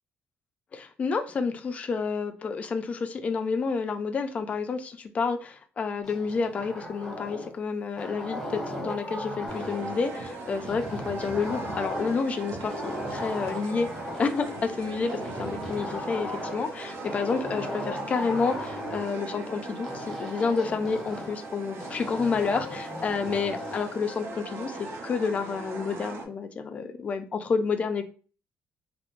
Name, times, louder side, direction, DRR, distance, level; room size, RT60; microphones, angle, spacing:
voice 1, 0.7-13.9 14.2-24.8 25.0-28.1, left 5 dB, 35° left, 7 dB, 0.3 m, -29 dB
sound 1, 6.0-7.6 8.0-10.0 10.7-12.3 12.6-14.6 15.1-16.7 17.0-19.1 19.8-21.4 21.8-23.8, left 1 dB, 5° left, 0.9 m, -37 dB
sound 2, 9.5-26.2, right 2 dB, 80° right, 0.6 m, -39 dB
2.9 x 2.0 x 2.4 m, 0.39 s
cardioid pair, 145°, 4 cm